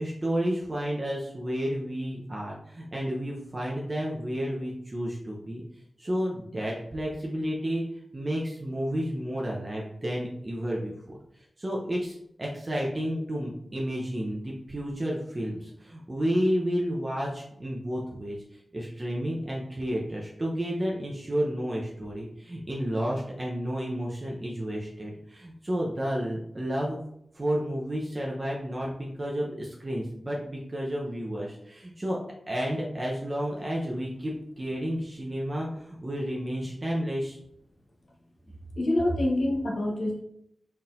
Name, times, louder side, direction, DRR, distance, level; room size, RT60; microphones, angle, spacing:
voice 1, 0.0-5.6 6.0-7.8 8.1-27.0 27.3-32.2 32.5-37.4, equal, 35° right, -3 dB, 0.7 m, -31 dB
voice 2, 38.8-40.2, left 1 dB, 55° left, 0 dB, 0.9 m, -26 dB
4.2 x 3.8 x 2.5 m, 0.74 s
wide cardioid pair, 75°, 0 cm